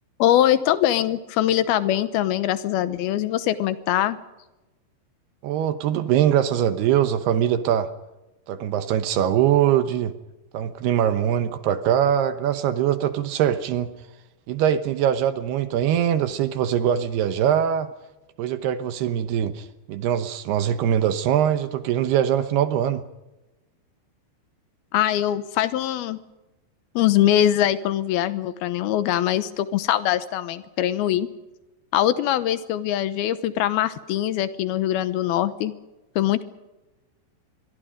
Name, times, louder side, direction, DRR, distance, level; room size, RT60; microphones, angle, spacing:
voice 1, 0.2-4.2 24.9-26.2 27.0-31.3 31.9-35.7 36.2-36.4, left 12 dB, 75° left, 13 dB, 2.5 m, -22 dB
voice 2, 5.4-7.9 8.5-10.1 10.5-13.9 14.5-17.9 18.4-23.0, right 10 dB, 75° right, 10 dB, 2.8 m, -22 dB
26.5 x 23.0 x 5.1 m, 1.0 s
omnidirectional pair, 5.1 m